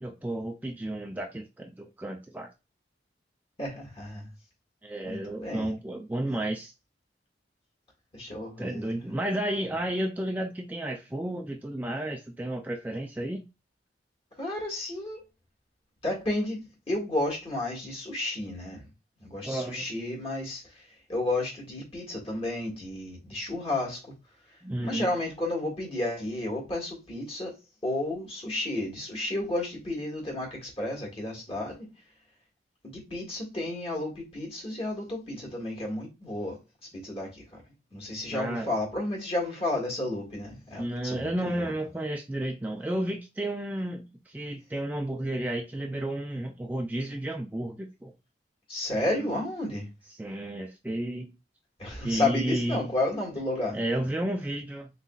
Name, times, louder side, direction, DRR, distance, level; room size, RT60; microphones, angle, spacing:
voice 1, 0.0-2.5 4.8-6.7 8.6-13.4 19.4-19.9 24.6-25.1 38.3-38.7 40.8-48.1 49.1-49.3 50.2-51.3 52.0-52.9 53.7-54.9, right 1 dB, 10° right, 0.3 m, -32 dB
voice 2, 3.6-4.3 5.0-5.8 8.1-9.0 14.4-15.2 16.0-18.9 19.2-20.8 21.1-24.1 24.8-27.5 27.8-31.9 32.8-36.6 36.9-37.4 37.9-41.7 48.7-49.9 51.8-53.8, left 2 dB, 30° left, 1.8 m, -32 dB
4.0 x 3.9 x 2.3 m
head